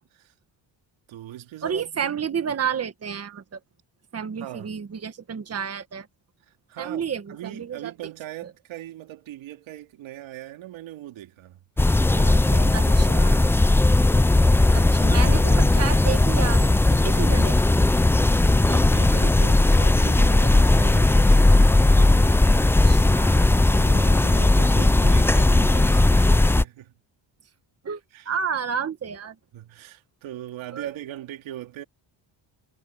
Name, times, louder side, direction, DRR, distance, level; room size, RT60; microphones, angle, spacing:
voice 1, 1.1-2.1 4.4-4.8 6.7-13.6 15.0-15.7 18.5-22.6 23.8-26.9 28.1-28.3 29.5-31.8, right 13 dB, 90° right, 2.9 m, -40 dB
voice 2, 1.6-3.4 4.1-6.1 6.8-7.9 12.7-13.4 14.7-17.9 22.9-23.5 27.8-28.0 28.3-29.4 30.7-30.9, right 7 dB, 35° right, 1.7 m, -31 dB
sound 1, 11.8-26.6, left 2 dB, 5° left, 0.4 m, -17 dB
cardioid pair, 125°, 45 cm